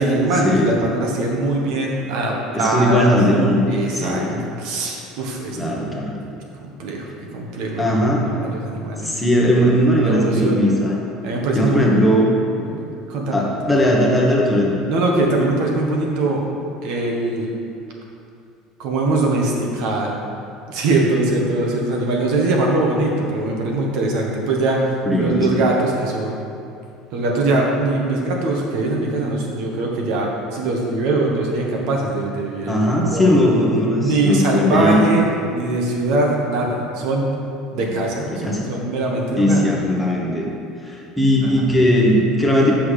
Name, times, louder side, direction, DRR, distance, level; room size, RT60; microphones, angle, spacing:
voice 1, 0.0-3.1 3.7-4.2 4.6-5.6 6.8-7.1 7.3-7.9 8.2-9.2 10.0-10.6 11.2-12.0 12.6-13.4 14.9-16.4 16.8-17.5 18.8-20.2 20.7-26.4 27.1-32.8 33.1-33.3 34.0-35.2 35.5-37.3 37.7-39.6, right 2 dB, 60° right, -1 dB, 1.5 m, -22 dB
voice 2, 2.5-4.5 5.6-6.2 7.8-8.3 9.0-10.9 11.5-12.3 13.3-14.8 25.0-25.7 32.7-35.1 38.3-38.6 39.4-40.5 40.8-42.7, equal, 5° left, -3 dB, 1.2 m, -18 dB
8.1 x 6.1 x 5.0 m, 2.5 s
cardioid pair, 150°, 0 cm